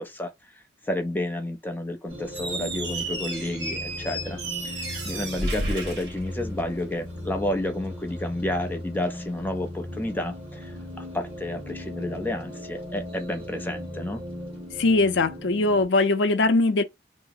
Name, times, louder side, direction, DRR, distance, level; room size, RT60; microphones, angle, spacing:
voice 1, 0.0-4.4 4.6-14.2, left 1 dB, 10° left, 0.5 m, -31 dB
sound 1, 2.1-15.9, left 1 dB, 30° right, 1.4 m, -38 dB
Squeak, 2.3-6.9, right 2 dB, 80° right, 1.2 m, -33 dB
voice 2, 14.8-16.8, left 2 dB, 85° left, 0.6 m, -21 dB
2.9 x 2.0 x 3.9 m
head